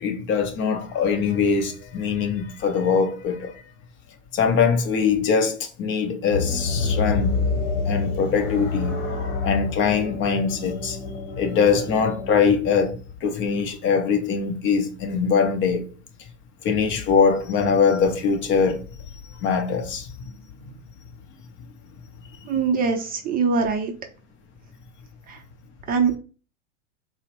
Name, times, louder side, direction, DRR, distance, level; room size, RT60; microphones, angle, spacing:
voice 1, 0.0-3.5 4.3-7.4 7.9-9.0 9.4-11.0 11.4-15.9 16.6-20.1, left 6 dB, 35° left, 0.6 m, -22 dB
sound 1, 6.3-12.6, left 4 dB, 50° left, 1.2 m, -27 dB
voice 2, 22.5-23.9 25.3-25.4 25.9-26.2, right 5 dB, 25° right, 0.5 m, -22 dB
4.1 x 2.0 x 3.0 m
hypercardioid pair, 105°, 36 cm